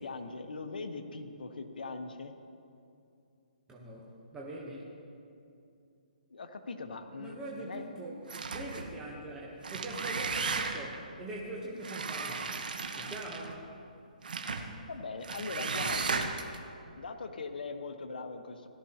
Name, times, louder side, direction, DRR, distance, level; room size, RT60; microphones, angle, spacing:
voice 1, 0.0-2.3 6.3-7.8 14.9-16.4 17.0-18.7, left 4 dB, 75° left, 6 dB, 1.1 m, -40 dB
voice 2, 3.7-4.8 7.2-8.2 8.5-12.6 13.0-13.7, right 1 dB, 10° right, -4 dB, 1.0 m, -42 dB
sound 1, 8.3-8.9 9.5-11.0 11.8-13.6 14.2-14.7 15.2-16.6, right 4 dB, 70° right, 1.1 m, -35 dB
17.0 x 12.5 x 2.9 m, 2.6 s
hypercardioid pair, 165°, 5 cm